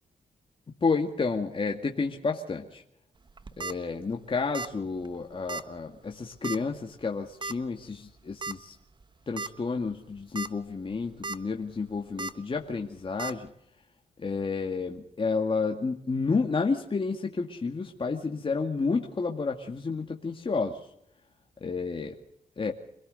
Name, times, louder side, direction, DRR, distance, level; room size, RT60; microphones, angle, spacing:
voice 1, 0.8-2.8 3.6-8.7 9.3-13.5 14.2-20.9 21.6-22.2 22.6-22.7, left 4 dB, 35° left, 2 dB, 2.2 m, -30 dB
sound 1, 3.3-3.7 4.5-4.8 5.1-5.2 5.5-5.6 6.4-6.7 7.4-7.5 8.4-8.6 9.0-9.1 9.4-9.5 10.2-10.5 10.9-11.4 12.2-12.3 13.2-13.3, right 3 dB, 30° right, 1.2 m, -35 dB
26.0 x 18.0 x 6.7 m, 0.75 s
cardioid pair, 80°, 15 cm